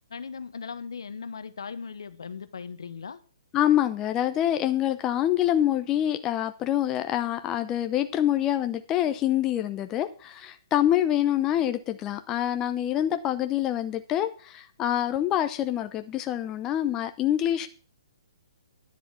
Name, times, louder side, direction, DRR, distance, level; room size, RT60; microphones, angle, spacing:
voice 1, 0.1-3.2, left 5 dB, 75° left, 12 dB, 1.1 m, -38 dB
voice 2, 3.5-17.7, left 11 dB, 20° left, 8 dB, 0.7 m, -26 dB
10.5 x 7.2 x 6.0 m, 0.40 s
hypercardioid pair, 135°, 2 cm